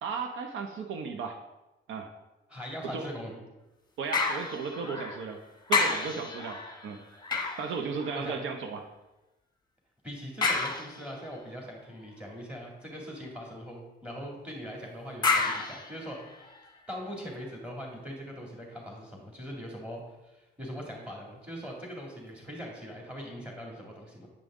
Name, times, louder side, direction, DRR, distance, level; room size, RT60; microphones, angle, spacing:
voice 1, 0.0-1.4 1.9-2.1 2.8-3.1 4.0-5.4 5.7-7.0 7.6-8.9, right 5 dB, 80° right, 5 dB, 0.8 m, -35 dB
voice 2, 2.5-3.4 8.1-8.4 10.0-16.5 16.9-24.3, equal, 5° right, -1 dB, 2.3 m, -41 dB
sound 1, 4.1-5.3 5.7-8.5 10.4-11.4 15.2-16.7 17.3-17.4, left 4 dB, 20° left, 1.1 m, -31 dB
8.3 x 5.2 x 3.6 m, 1.0 s
cardioid pair, 90°, 20 cm